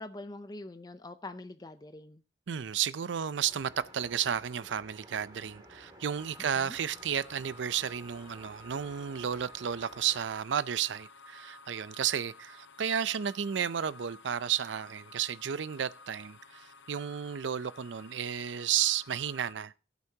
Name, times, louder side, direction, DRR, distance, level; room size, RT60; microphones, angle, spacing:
voice 1, 0.0-2.2 6.5-6.8, left 2 dB, 20° left, 0.5 m, -44 dB
voice 2, 2.5-19.7, right 8 dB, 85° right, 0.5 m, -32 dB
sound 1, 3.4-10.2, right 1 dB, 20° right, 2.6 m, -54 dB
sound 2, 6.2-19.5, left 3 dB, 85° left, 0.6 m, -54 dB
19.5 x 8.2 x 2.8 m
head